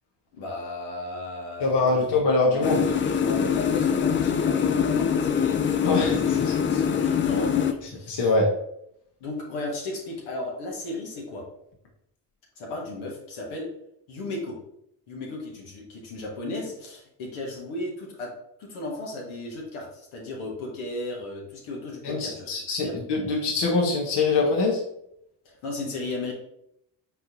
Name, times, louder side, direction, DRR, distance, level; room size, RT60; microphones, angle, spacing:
voice 1, 0.3-2.0 2.4-8.2 9.2-11.4 12.6-13.7 14.1-14.6 15.1-18.3 18.6-22.5 22.8-23.0 25.4-26.3, left 2 dB, 70° left, -2 dB, 1.4 m, -35 dB
voice 2, 1.6-2.8 5.8-6.5 7.0-7.1 8.1-8.5 22.0-24.8, left 3 dB, 55° left, -1 dB, 1.3 m, -23 dB
sound 1, 2.6-7.7, left 7 dB, 25° left, 0.4 m, -23 dB
4.4 x 4.1 x 2.8 m, 0.76 s
hypercardioid pair, 50°, 49 cm